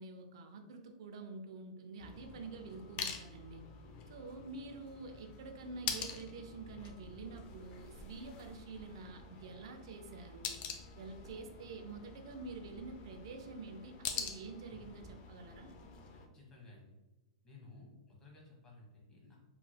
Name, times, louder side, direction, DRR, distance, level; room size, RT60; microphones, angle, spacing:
voice 1, 0.0-3.6 4.1-10.5 11.0-15.7, right 3 dB, 65° right, 5 dB, 0.4 m, -48 dB
sound 1, 2.0-16.3, left 6 dB, 40° left, 0.5 m, -46 dB
voice 2, 16.3-16.9 17.4-19.4, left 3 dB, 20° left, -2 dB, 1.1 m, -56 dB
3.1 x 2.9 x 2.2 m, 1.1 s
hypercardioid pair, 115°, 3 cm